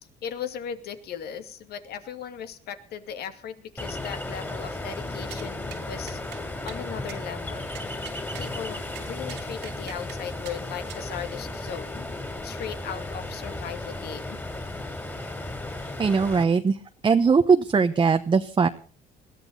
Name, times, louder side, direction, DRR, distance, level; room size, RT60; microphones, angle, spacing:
voice 1, 0.2-6.2 6.6-7.7 8.4-12.1 12.4-14.4, left 8 dB, 70° left, 8 dB, 2.5 m, -37 dB
Ocean, 3.8-16.4, left 2 dB, 10° left, 3.6 m, -35 dB
sound 1, 5.3-5.5 5.7-5.8 6.1-6.4 6.7-6.8 7.1-7.2 7.7-8.5 8.9-10.2 10.4-10.6 10.9-11.0, right 13 dB, 90° right, 2.8 m, -43 dB
voice 2, 15.8-16.8 17.0-18.7, right 5 dB, 30° right, 7 dB, 1.1 m, -20 dB
21.0 x 15.0 x 4.0 m, 0.39 s
cardioid pair, 110°, 17 cm